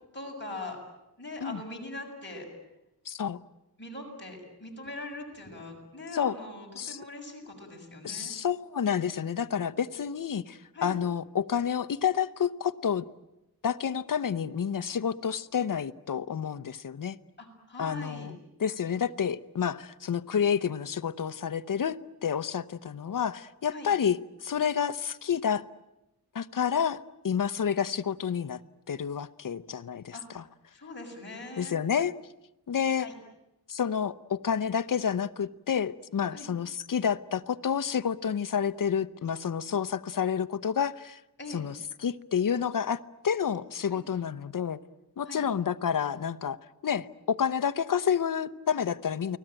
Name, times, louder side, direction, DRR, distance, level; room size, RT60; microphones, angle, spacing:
voice 1, 0.1-0.8 1.2-2.5 3.8-8.3 10.7-10.9 17.4-18.3 23.7-23.9 30.1-30.2 30.7-31.8 33.0-33.2 36.3-36.5 41.4-41.7 43.9-44.0 45.3-45.5, left 2 dB, 30° left, 6.8 m, -41 dB
voice 2, 3.1-3.4 6.1-6.3 6.8-7.0 8.0-13.0 13.6-17.2 17.8-25.6 26.3-28.6 28.9-30.4 31.6-32.1 32.7-33.1 33.7-41.2 41.5-43.0 43.2-44.8 45.2-46.6 46.8-49.4, left 7 dB, 55° left, 0.8 m, -29 dB
29.5 x 20.0 x 9.0 m
wide cardioid pair, 145°, 38 cm